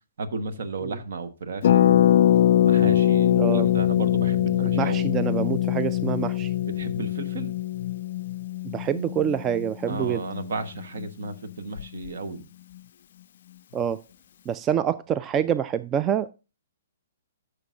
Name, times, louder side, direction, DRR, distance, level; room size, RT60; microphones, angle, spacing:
voice 1, 0.2-2.2 2.6-5.1 6.6-7.5 9.9-12.4, right 3 dB, 60° right, 1.1 m, -34 dB
Harp, 1.6-11.3 11.5-11.6 11.8-12.1, left 12 dB, 55° left, 0.3 m, -23 dB
voice 2, 3.4-3.7 4.6-6.5 8.6-10.2 13.7-14.0 14.5-16.3, right 9 dB, 25° right, 0.3 m, -26 dB
14.0 x 6.5 x 2.5 m
figure-of-eight pair, 120°, 0 cm